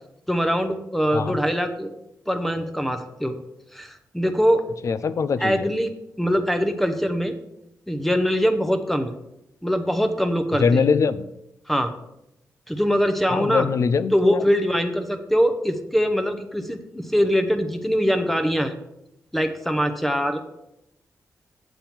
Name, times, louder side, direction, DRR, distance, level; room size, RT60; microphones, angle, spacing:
voice 1, 0.3-1.9 2.3-3.4 3.7-4.6 5.4-5.9 6.2-7.3 7.9-9.1 9.6-10.8 11.7-11.9 12.7-13.7 14.1-18.7 19.3-20.4, equal, 5° left, 7 dB, 0.8 m, -22 dB
voice 2, 4.8-5.7 10.6-11.2 13.3-14.4, left 5 dB, 60° left, 14 dB, 0.5 m, -22 dB
7.5 x 7.1 x 4.5 m, 0.85 s
cardioid pair, 80°, 6 cm